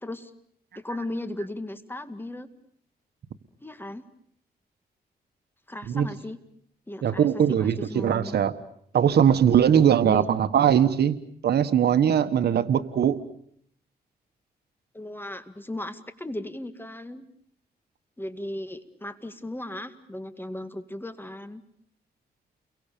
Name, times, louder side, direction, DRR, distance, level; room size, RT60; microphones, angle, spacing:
voice 1, 0.8-2.5 3.6-4.0 5.7-6.4 6.9-8.4 10.0-10.3 12.5-12.7 14.9-17.3 18.2-21.6, left 1 dB, 10° left, 10 dB, 2.1 m, -36 dB
voice 2, 7.0-8.5 8.9-11.2 11.4-13.2, right 9 dB, 75° right, 11 dB, 1.4 m, -21 dB
30.0 x 23.0 x 6.9 m, 0.65 s
cardioid pair, 80°, 17 cm